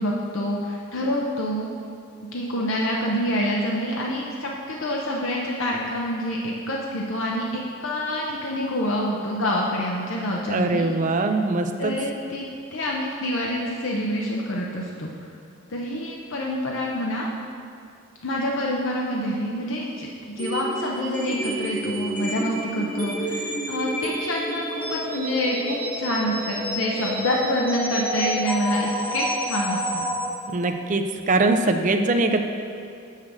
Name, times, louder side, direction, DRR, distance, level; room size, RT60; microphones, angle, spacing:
voice 1, 0.0-1.7 2.3-10.8 11.8-15.3 15.7-17.3 18.2-30.0, left 1 dB, 70° left, -2 dB, 0.7 m, -27 dB
voice 2, 10.5-11.9 30.5-32.4, right 2 dB, 35° right, 6 dB, 0.4 m, -22 dB
sound 1, 20.4-30.3, right 1 dB, 10° left, 1.1 m, -29 dB
6.4 x 5.7 x 6.0 m, 2.4 s
head